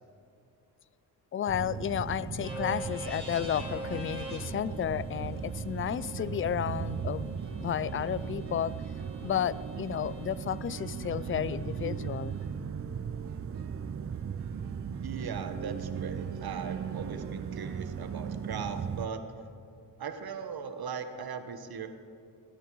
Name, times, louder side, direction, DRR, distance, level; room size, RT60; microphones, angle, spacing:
voice 1, 1.3-7.3 7.6-8.7 9.2-12.4, left 9 dB, 30° left, 19 dB, 0.4 m, -32 dB
sound 1, 1.5-19.1, right 7 dB, 35° right, 0.6 m, -37 dB
sound 2, 2.4-10.3, right 1 dB, 15° right, 3.2 m, -45 dB
sound 3, 6.3-18.5, right 9 dB, 75° right, 0.7 m, -49 dB
voice 2, 15.0-19.2 20.0-21.9, right 6 dB, 60° right, 8 dB, 1.2 m, -39 dB
16.5 x 9.2 x 4.7 m, 2.4 s
cardioid pair, 65°, 42 cm